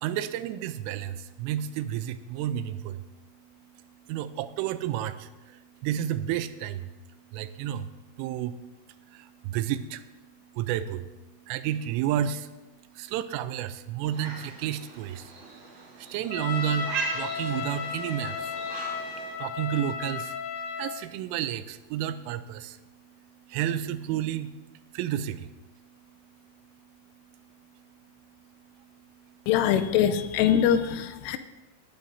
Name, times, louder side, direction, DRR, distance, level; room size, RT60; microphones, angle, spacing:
voice 1, 0.0-3.1 4.1-6.9 7.3-7.9 8.2-8.6 8.9-10.1 10.5-12.5 12.9-15.3 15.8-18.6 19.4-20.4 20.8-22.8 23.5-24.5 24.9-25.5 28.8-28.9, right 10 dB, 85° right, 12 dB, 3.1 m, -31 dB
sound 1, 14.1-19.4, right 4 dB, 45° right, 4.5 m, -38 dB
Trumpet, 16.3-21.0, left 6 dB, 65° left, 3.2 m, -34 dB
voice 2, 29.5-31.4, left 9 dB, 85° left, 10 dB, 3.1 m, -23 dB
18.5 x 10.5 x 2.7 m, 1.1 s
omnidirectional pair, 5.7 m